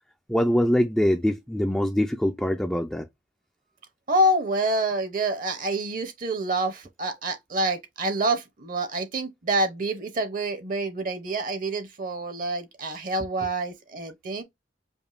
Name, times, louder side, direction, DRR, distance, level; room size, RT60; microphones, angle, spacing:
voice 1, 0.3-3.1, equal, 5° left, 0.3 m, -23 dB
voice 2, 4.1-14.4, right 1 dB, 45° right, 0.7 m, -27 dB
5.2 x 2.2 x 2.4 m
head